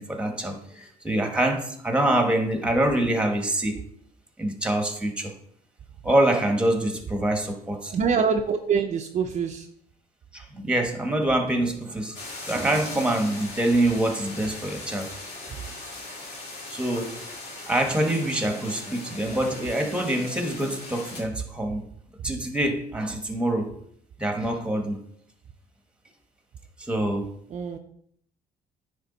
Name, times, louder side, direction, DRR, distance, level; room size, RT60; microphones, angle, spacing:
voice 1, 0.0-3.8 4.4-5.3 6.0-7.9 10.3-12.2 12.5-15.1 16.7-17.2 17.7-21.8 22.2-23.7 24.2-25.0 26.8-27.3, right 1 dB, 5° right, 4 dB, 1.3 m, -25 dB
voice 2, 7.9-9.7 27.5-27.8, right 6 dB, 45° right, 4 dB, 0.5 m, -25 dB
sound 1, 12.1-21.2, left 2 dB, 70° left, 2.5 m, -39 dB
9.7 x 3.5 x 4.0 m, 0.67 s
cardioid pair, 110°, 17 cm